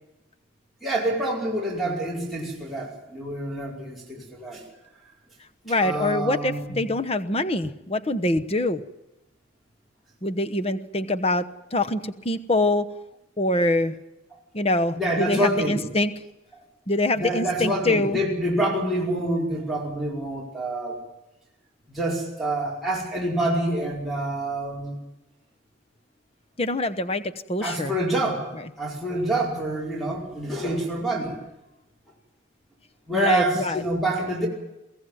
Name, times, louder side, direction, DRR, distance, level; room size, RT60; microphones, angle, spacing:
voice 1, 0.8-4.6 5.8-6.8 14.9-15.8 17.1-21.0 21.9-25.0 27.6-28.5 28.8-31.4 33.1-34.5, right 1 dB, ahead, -5 dB, 5.0 m, -27 dB
voice 2, 5.7-8.8 10.2-11.4 11.7-12.9 13.4-13.9 14.5-16.1 16.9-18.2 26.6-27.2 27.5-27.9 33.1-33.8, left 2 dB, 30° left, 10 dB, 1.0 m, -24 dB
23.5 x 16.0 x 9.2 m, 0.94 s
head